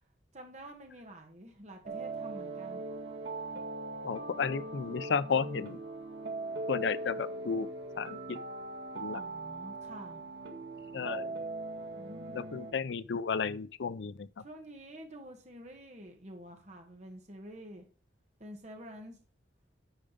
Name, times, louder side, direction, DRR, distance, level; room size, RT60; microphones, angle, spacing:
voice 1, 0.3-2.9 9.1-10.2 11.9-12.4 14.4-17.9 18.4-19.2, equal, 40° right, 2.0 m, -48 dB
sound 1, 1.8-12.7, right 2 dB, 75° right, 1.9 m, -40 dB
voice 2, 4.0-5.8 6.7-7.7 8.0-8.2 8.9-9.2 10.9-11.3 12.3-14.3, left 5 dB, 80° left, 0.5 m, -33 dB
8.9 x 5.2 x 5.1 m
head